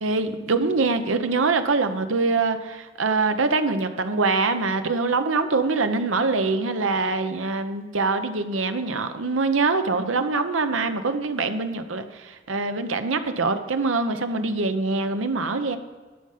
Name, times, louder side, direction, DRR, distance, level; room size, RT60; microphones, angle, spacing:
voice 1, 0.0-15.8, right 3 dB, 85° right, 8 dB, 0.9 m, -24 dB
12.0 x 5.6 x 6.6 m, 1.4 s
head